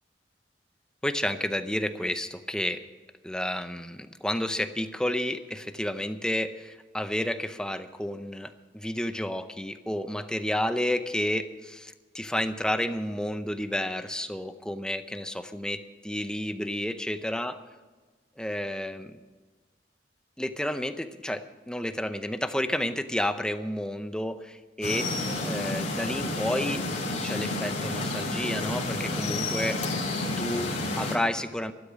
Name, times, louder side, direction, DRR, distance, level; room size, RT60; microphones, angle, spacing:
voice 1, 1.0-2.8 3.2-17.5 18.4-19.2 20.4-25.1 25.4-26.8 27.2-30.1 30.4-31.7, left 1 dB, 5° left, 9 dB, 0.6 m, -31 dB
sound 1, 24.8-31.2, left 2 dB, 45° left, 2.9 m, -30 dB
13.0 x 12.0 x 6.2 m, 1.3 s
head